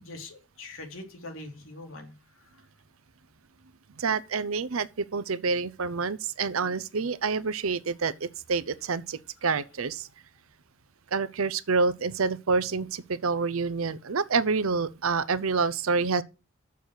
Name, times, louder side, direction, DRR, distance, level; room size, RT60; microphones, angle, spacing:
voice 1, 0.0-2.1, left 2 dB, 75° left, 2.7 m, -42 dB
voice 2, 4.0-10.1 11.1-16.2, right 4 dB, 85° right, 0.7 m, -27 dB
7.0 x 6.4 x 7.7 m
head